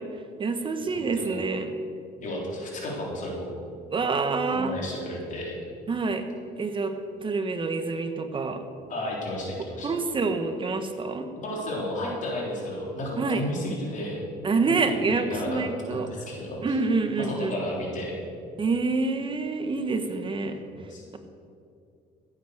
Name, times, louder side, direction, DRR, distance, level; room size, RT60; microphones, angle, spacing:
voice 1, 0.4-1.7 3.9-4.8 5.9-6.2 6.6-6.9 7.2-8.6 9.8-11.3 13.2-13.4 14.4-16.1 16.6-17.5 18.6-20.6, right 4 dB, 30° right, 7 dB, 1.3 m, -27 dB
voice 2, 2.2-3.5 4.5-5.6 8.9-10.0 11.4-14.2 14.7-15.6 15.9-16.8 17.2-18.1 20.6-21.0, left 1 dB, 50° left, -3 dB, 3.6 m, -33 dB
15.0 x 8.7 x 6.6 m, 2.5 s
cardioid pair, 110°, 17 cm